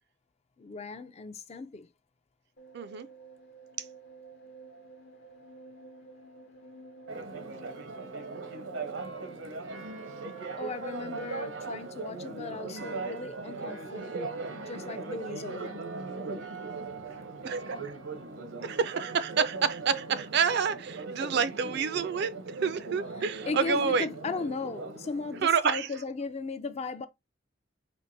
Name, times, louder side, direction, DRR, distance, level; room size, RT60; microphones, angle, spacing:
voice 1, 0.6-1.9 10.6-14.2 14.5-15.8 23.2-27.1, left 4 dB, 35° left, 0.3 m, -37 dB
sound 1, 2.6-11.5, right 4 dB, 55° left, 0.8 m, -50 dB
voice 2, 2.7-3.1 17.4-17.7 18.6-24.1 25.4-25.9, right 6 dB, 55° right, 0.4 m, -28 dB
Church bell, 7.1-25.4, right 3 dB, 80° right, 0.8 m, -39 dB
4.5 x 2.5 x 2.6 m
head